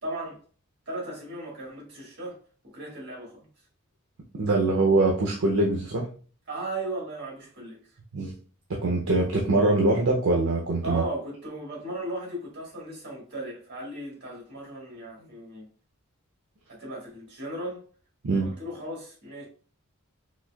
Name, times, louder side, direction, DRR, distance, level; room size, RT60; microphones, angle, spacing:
voice 1, 0.0-0.4 0.8-2.4 2.7-3.5 6.5-7.8 10.8-15.7 16.7-17.8 18.3-19.4, right 2 dB, 50° right, 1.6 m, -36 dB
voice 2, 4.3-6.1 8.1-8.3 8.7-11.0 18.2-18.5, right 2 dB, 70° right, 0.6 m, -23 dB
4.0 x 2.5 x 2.3 m
head